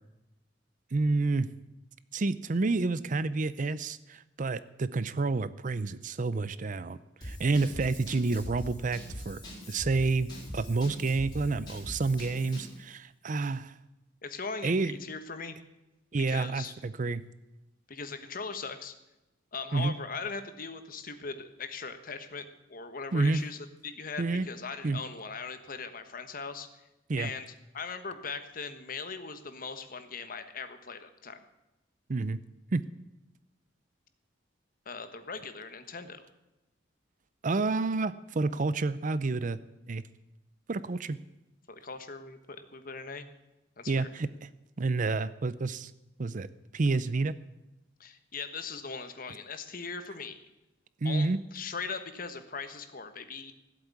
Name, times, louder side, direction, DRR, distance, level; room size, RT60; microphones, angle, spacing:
voice 1, 0.9-1.5 2.1-9.4 9.7-13.7 14.6-15.0 16.1-17.2 19.7-19.9 23.1-23.4 24.2-24.5 24.8-25.0 27.1-27.3 32.1-32.4 32.7-32.8 37.4-39.6 39.9-40.0 40.7-41.2 43.9-44.5 44.8-45.9 46.2-46.5 46.7-47.3 51.0-51.4, right 3 dB, 40° right, 16 dB, 0.5 m, -29 dB
Drum kit / Drum, 7.2-12.8, equal, 25° left, 4.4 m, -42 dB
voice 2, 14.2-15.6 16.2-16.7 17.9-18.9 19.5-26.7 27.1-27.4 27.7-31.4 34.8-36.2 41.7-43.3 43.8-44.1 48.0-50.4 51.0-53.5, left 5 dB, 45° left, 9 dB, 1.3 m, -40 dB
15.5 x 8.2 x 8.4 m, 0.97 s
head